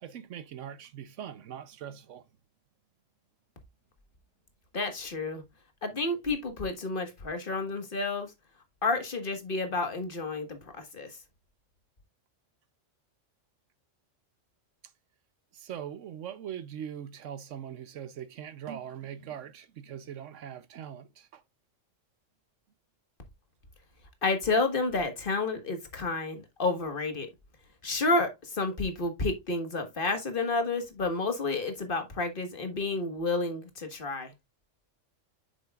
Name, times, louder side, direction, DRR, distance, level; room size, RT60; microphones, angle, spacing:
voice 1, 0.0-2.2 15.5-21.4, right 9 dB, 75° right, 1.0 m, -41 dB
voice 2, 4.7-5.4 5.8-8.3 8.8-11.1 24.2-27.3 27.8-34.3, left 3 dB, 45° left, 1.6 m, -30 dB
8.4 x 6.3 x 2.3 m
omnidirectional pair, 1.3 m